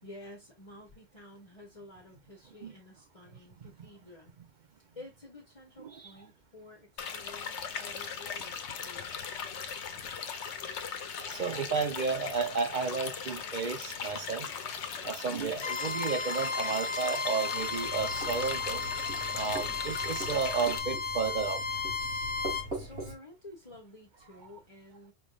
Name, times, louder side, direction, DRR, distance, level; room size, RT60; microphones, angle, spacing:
voice 1, 0.0-4.3 5.0-9.1 22.4-25.1, left 2 dB, 30° left, 1.1 m, -51 dB
sound 1, 7.0-20.8, left 6 dB, 80° left, 1.0 m, -39 dB
voice 2, 11.3-14.5 15.0-18.8 19.3-21.6, right 5 dB, 45° right, 0.8 m, -32 dB
Bowed string instrument, 15.6-22.7, left 4 dB, 55° left, 0.7 m, -34 dB
Writing, 17.6-23.1, right 1 dB, 80° right, 3.6 m, -42 dB
5.2 x 3.5 x 2.4 m
omnidirectional pair, 1.2 m